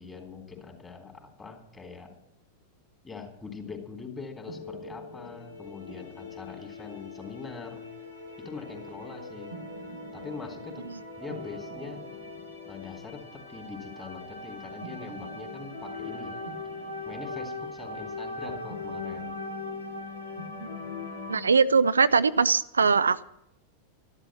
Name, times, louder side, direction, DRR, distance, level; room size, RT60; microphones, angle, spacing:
voice 1, 0.0-2.1 3.0-7.9 8.4-9.5 10.1-10.8 11.2-12.0 12.7-16.4 17.1-19.4, left 5 dB, 15° left, 3.4 m, -42 dB
sound 1, 4.5-21.4, left 2 dB, 75° left, 2.6 m, -40 dB
voice 2, 21.3-23.2, right 5 dB, 75° right, 0.5 m, -21 dB
13.0 x 12.0 x 7.6 m
figure-of-eight pair, 90°, 0 cm